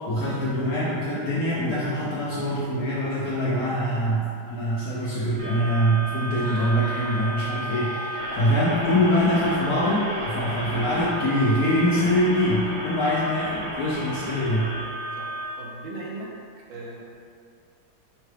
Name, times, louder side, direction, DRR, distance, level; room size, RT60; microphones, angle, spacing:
voice 1, 0.1-14.7, equal, 70° left, -7 dB, 0.8 m, -24 dB
sound 1, 5.4-15.4, right 1 dB, 60° right, 1.5 m, -33 dB
Laughter, 6.3-7.3 7.5-8.4 8.7-12.0, equal, 15° right, 0.6 m, -42 dB
voice 2, 15.6-16.4 16.7-17.0, right 2 dB, 75° right, -4 dB, 1.4 m, -38 dB
5.6 x 2.3 x 3.2 m, 2.4 s
omnidirectional pair, 2.1 m